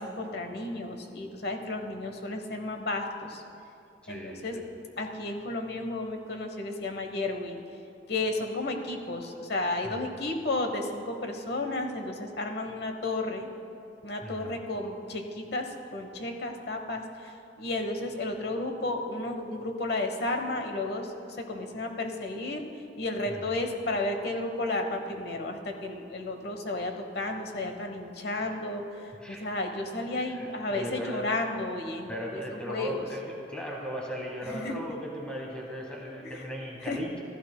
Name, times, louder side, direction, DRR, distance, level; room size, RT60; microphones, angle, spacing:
voice 1, 0.0-3.4 4.1-4.6 5.0-7.6 8.1-13.5 14.0-22.7 23.0-33.0 34.4-34.8 36.2-36.4 36.8-37.0, left 2 dB, 65° left, 5 dB, 1.0 m, -33 dB
voice 2, 4.0-4.7 9.8-10.0 14.2-14.5 23.3-23.4 29.2-29.4 30.3-31.3 32.1-37.1, equal, 5° left, -2 dB, 1.2 m, -37 dB
15.0 x 13.5 x 2.2 m, 2.6 s
head